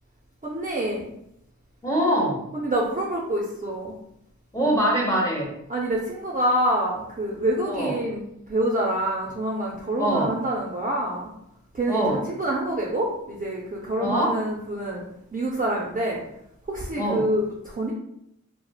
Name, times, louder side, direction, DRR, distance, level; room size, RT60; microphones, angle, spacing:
voice 1, 0.4-1.1 2.5-3.9 5.7-8.2 8.5-11.3 11.7-15.0 15.3-16.2 16.7-17.9, right 1 dB, 25° right, -4 dB, 0.4 m, -26 dB
voice 2, 1.8-2.4 4.5-5.5 7.7-8.0 10.0-10.3 11.9-12.2 14.0-14.4 17.0-17.2, right 1 dB, 10° left, -3 dB, 0.9 m, -23 dB
3.0 x 2.0 x 2.3 m, 0.78 s
wide cardioid pair, 50°, 32 cm